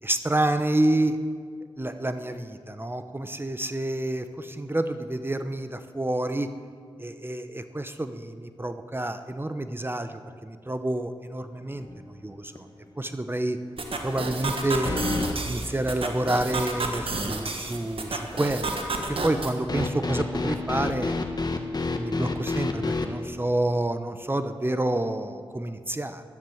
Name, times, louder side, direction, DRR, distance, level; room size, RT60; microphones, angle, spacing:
voice 1, 0.0-1.2 1.8-6.5 7.0-11.9 12.2-12.7 13.0-13.6 14.0-15.0 15.5-21.1 22.0-26.2, right 1 dB, 20° right, 9 dB, 0.8 m, -28 dB
sound 1, 11.8-12.2 12.6-12.7 14.9-15.4 19.7-23.1, left 3 dB, 40° left, 1.4 m, -28 dB
sound 2, 13.8-19.5, right 2 dB, 65° right, 1.6 m, -31 dB
12.5 x 11.0 x 7.2 m, 2.1 s
cardioid pair, 45°, 10 cm